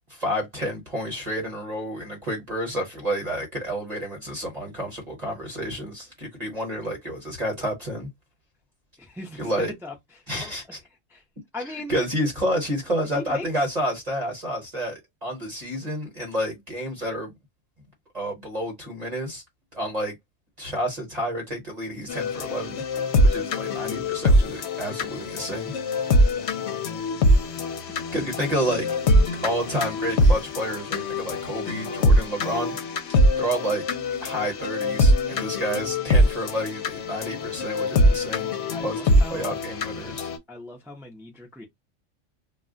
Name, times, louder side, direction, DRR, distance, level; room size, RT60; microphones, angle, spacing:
voice 1, 0.1-8.1 9.4-9.7 10.3-10.8 11.6-17.4 18.1-19.4 19.7-20.2 20.6-22.8 23.2-25.7 28.1-32.8 33.4-33.9 34.2-38.5 38.8-40.3, equal, 35° right, 1.1 m, -30 dB
voice 2, 9.0-9.9 10.4-10.5 11.1-11.2 11.5-12.1 13.1-13.5 26.3-27.1 27.5-27.7 38.7-39.6 40.5-41.7, left 1 dB, 5° right, 0.5 m, -39 dB
sound 1, 22.1-40.4, left 1 dB, 70° left, 0.9 m, -23 dB
2.4 x 2.2 x 3.7 m
omnidirectional pair, 1.2 m